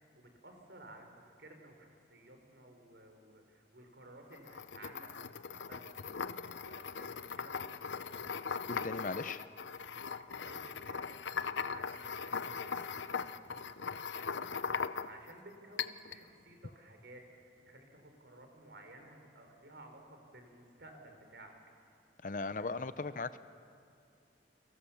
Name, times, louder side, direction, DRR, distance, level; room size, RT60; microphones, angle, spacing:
voice 1, 0.0-6.0 6.4-7.8 10.2-21.5, right 1 dB, 70° right, 4 dB, 4.1 m, -56 dB
sound 1, 4.3-15.3 15.8-16.2, left 6 dB, 85° left, 0.7 m, -39 dB
voice 2, 8.7-9.4 22.2-23.4, left 3 dB, 45° left, 13 dB, 0.7 m, -37 dB
29.5 x 23.5 x 7.2 m, 2.5 s
head